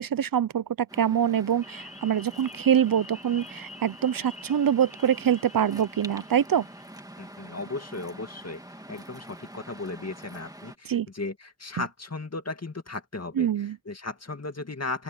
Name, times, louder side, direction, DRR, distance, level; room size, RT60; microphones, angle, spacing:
voice 1, 0.0-6.6 10.9-11.1 13.4-13.8, right 9 dB, 75° right, 0.5 m, -25 dB
Waves surf, 0.9-10.8, right 1 dB, 10° right, 2.3 m, -46 dB
sound 1, 1.6-6.8, left 2 dB, 20° left, 4.5 m, -48 dB
voice 2, 7.2-8.6 8.9-15.0, left 3 dB, 45° left, 2.3 m, -36 dB
open air
wide cardioid pair, 60°, 35 cm